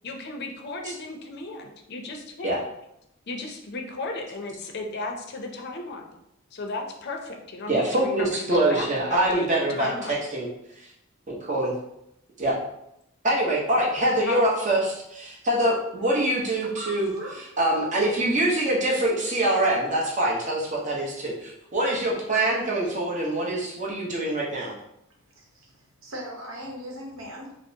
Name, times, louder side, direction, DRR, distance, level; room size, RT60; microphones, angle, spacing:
voice 1, 0.0-2.5 3.3-6.2 6.5-10.2 14.3-14.4, left 3 dB, 55° left, 3 dB, 0.5 m, -35 dB
voice 2, 7.7-10.5 10.8-10.9 11.3-11.7 12.4-12.6 13.2-17.1 17.6-24.7, right 1 dB, 35° right, -3 dB, 0.9 m, -24 dB
voice 3, 16.6-17.5 25.3-27.6, right 1 dB, 75° right, -1 dB, 0.9 m, -39 dB
5.0 x 2.0 x 2.8 m, 0.79 s
head